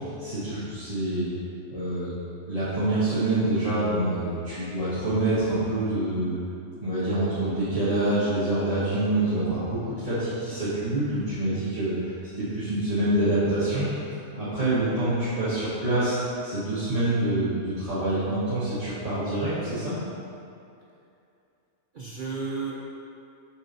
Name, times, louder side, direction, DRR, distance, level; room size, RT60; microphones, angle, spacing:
voice 1, 0.2-1.3 1.7-2.1 2.5-6.4 6.8-13.9 14.3-16.2 16.4-20.0, right 1 dB, 25° right, -15 dB, 1.8 m, -26 dB
voice 2, 14.6-14.9 21.9-22.8, right 4 dB, 65° right, -4 dB, 0.5 m, -34 dB
7.1 x 6.8 x 2.8 m, 2.6 s
omnidirectional pair, 1.5 m